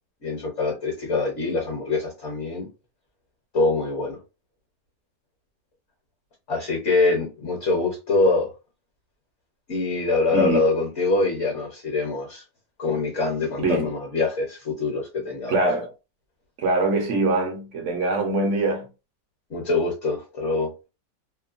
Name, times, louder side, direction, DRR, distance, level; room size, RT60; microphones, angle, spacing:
voice 1, 0.2-2.7 3.5-4.2 6.5-8.5 9.7-12.4 12.8-15.6 19.5-20.7, left 3 dB, 50° left, 1.1 m, -24 dB
voice 2, 15.5-15.9 16.6-18.9, right 2 dB, 55° right, 0.8 m, -23 dB
3.0 x 2.2 x 2.4 m
omnidirectional pair, 1.9 m